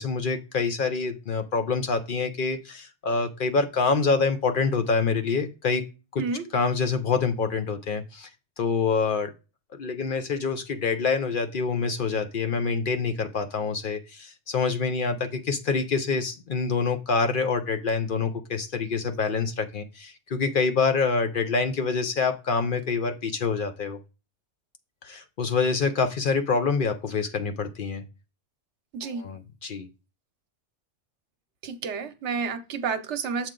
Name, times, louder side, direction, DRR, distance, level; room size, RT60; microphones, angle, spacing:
voice 1, 0.0-5.8 6.1-6.2 6.5-8.3 8.6-9.3 9.8-24.0 25.0-28.0 29.0-29.9, left 4 dB, 55° left, 7 dB, 0.7 m, -26 dB
voice 2, 28.9-29.3 31.6-33.5, right 5 dB, 75° right, 9 dB, 1.0 m, -30 dB
7.6 x 4.5 x 3.7 m, 0.30 s
omnidirectional pair, 1.2 m